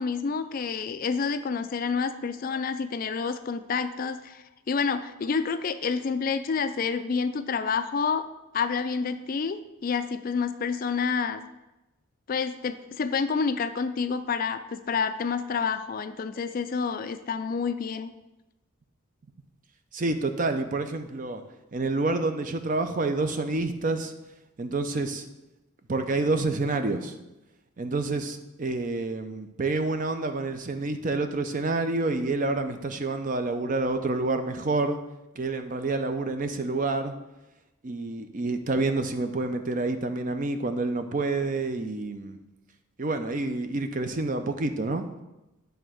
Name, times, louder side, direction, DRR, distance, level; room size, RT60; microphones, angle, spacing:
voice 1, 0.0-8.2 8.5-11.4 12.3-18.1, left 5 dB, 40° left, 10 dB, 0.3 m, -28 dB
voice 2, 19.9-21.4 21.7-24.1 24.6-25.3 25.9-27.2 27.8-35.0 35.4-37.1 37.8-42.4 43.0-45.1, right 3 dB, 40° right, 8 dB, 0.5 m, -28 dB
8.7 x 3.4 x 6.2 m, 0.99 s
head